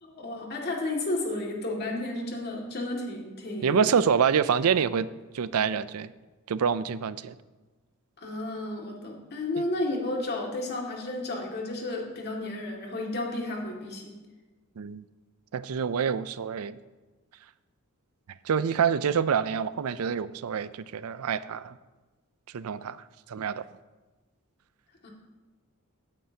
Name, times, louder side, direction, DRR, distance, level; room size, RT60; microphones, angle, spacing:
voice 1, 0.0-3.9 8.2-14.2 25.0-25.1, left 2 dB, 50° left, -1 dB, 2.1 m, -32 dB
voice 2, 3.6-5.1 5.3-6.1 6.5-7.4 14.8-15.0 15.5-16.8 18.4-21.7 22.5-23.0 23.3-23.6, right 7 dB, 80° right, 16 dB, 0.4 m, -26 dB
17.0 x 9.0 x 2.8 m, 1.2 s
head